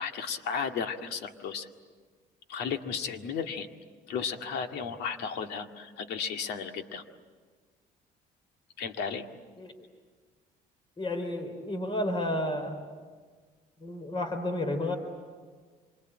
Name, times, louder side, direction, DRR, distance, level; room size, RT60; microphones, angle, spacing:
voice 1, 0.0-1.7 2.5-3.7 4.1-7.0 8.8-9.3, left 6 dB, 80° left, 5 dB, 2.0 m, -34 dB
voice 2, 11.0-12.8 13.8-15.0, left 1 dB, 30° left, 7 dB, 4.0 m, -31 dB
26.5 x 25.0 x 9.0 m, 1.5 s
cardioid pair, 110°, 17 cm